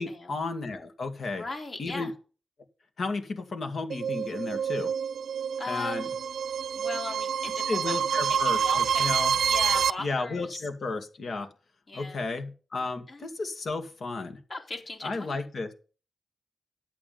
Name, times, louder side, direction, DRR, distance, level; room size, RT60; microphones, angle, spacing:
voice 1, 0.0-1.5 1.8-2.1 3.0-4.9 5.7-6.0 7.7-9.3 10.0-11.5 11.9-14.4 15.0-15.7, left 3 dB, 65° left, 6 dB, 2.1 m, -33 dB
voice 2, 1.3-2.1 5.6-6.1 6.8-8.0 8.4-8.8 9.5-10.6 11.9-12.3 13.1-13.3 14.5-15.4, left 2 dB, 45° left, 2 dB, 3.8 m, -38 dB
sound 1, 3.9-9.9, right 7 dB, 90° right, 0.5 m, -27 dB
11.5 x 8.6 x 5.5 m, 0.37 s
wide cardioid pair, 90°, 0 cm